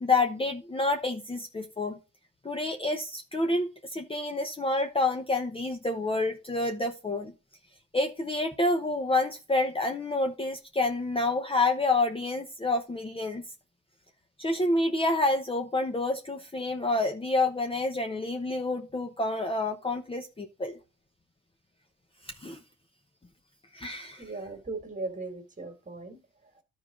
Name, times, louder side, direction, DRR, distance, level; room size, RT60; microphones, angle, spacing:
voice 1, 0.0-2.0 2.4-7.3 7.9-13.4 14.4-20.8 22.2-22.6 23.7-24.2, left 2 dB, 20° left, 0.9 m, -28 dB
voice 2, 24.2-26.6, right 3 dB, 25° right, 2.1 m, -38 dB
11.5 x 4.8 x 3.9 m
cardioid pair, 90°, 30 cm